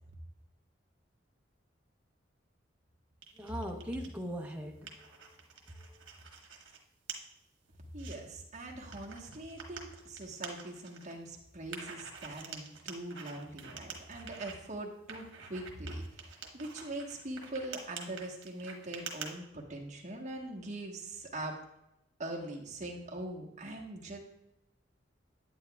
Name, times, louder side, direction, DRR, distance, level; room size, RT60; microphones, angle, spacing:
sound 1, 3.2-4.1 4.5-6.8 7.1-7.2 7.7-8.2 8.9-11.1 11.7-14.5 15.1-19.3, right 6 dB, 80° right, 1.2 m, -46 dB
voice 1, 3.3-6.1, equal, 10° right, 1 dB, 0.8 m, -41 dB
voice 2, 7.9-21.6 22.2-24.2, right 1 dB, 40° right, 0 dB, 1.2 m, -42 dB
9.7 x 8.6 x 2.3 m, 0.85 s
head